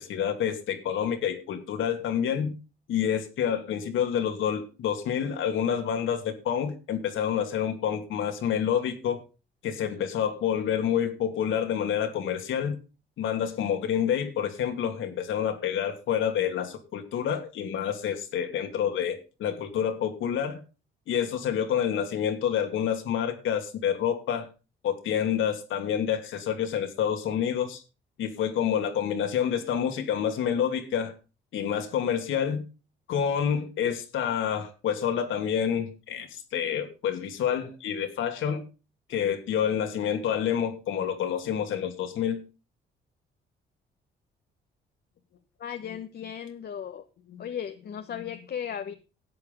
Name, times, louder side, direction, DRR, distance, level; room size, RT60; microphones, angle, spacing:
voice 1, 0.0-2.6 2.9-9.2 9.6-12.8 13.2-20.6 21.1-24.5 24.8-27.8 28.2-31.1 31.5-32.7 33.1-38.6 39.1-42.4 47.3-47.4, left 8 dB, 80° left, 6 dB, 2.6 m, -28 dB
voice 2, 45.6-47.0 47.4-48.9, left 8 dB, 55° left, 8 dB, 1.2 m, -36 dB
12.5 x 8.5 x 5.4 m, 0.33 s
cardioid pair, 90°, 20 cm